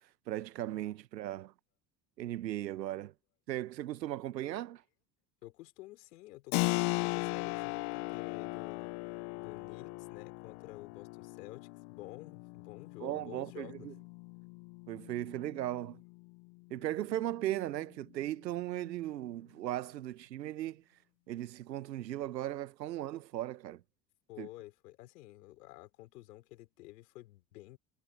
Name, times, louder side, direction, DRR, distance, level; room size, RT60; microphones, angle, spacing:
voice 1, 0.3-1.5 2.2-3.1 3.5-4.8 13.0-13.9 14.9-16.0 16.7-20.8 21.3-23.8 24.4-24.5, right 13 dB, 80° right, 1.1 m, -37 dB
voice 2, 5.4-14.0 24.3-27.8, left 17 dB, 70° left, 5.2 m, -51 dB
Keyboard (musical), 6.5-16.9, left 31 dB, 55° left, 1.0 m, -38 dB
figure-of-eight pair, 65°, 49 cm